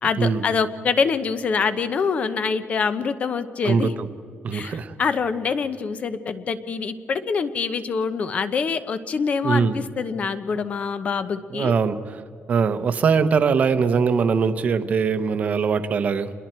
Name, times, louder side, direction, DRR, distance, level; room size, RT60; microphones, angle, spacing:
voice 1, 0.0-3.9 4.5-11.7, left 5 dB, 35° left, 12 dB, 0.9 m, -25 dB
voice 2, 3.6-4.1 4.4-4.9 9.4-9.8 11.5-12.2 12.5-16.3, right 5 dB, 40° right, 10 dB, 0.9 m, -21 dB
28.0 x 21.5 x 4.5 m, 2.3 s
cardioid pair, 175°, 4 cm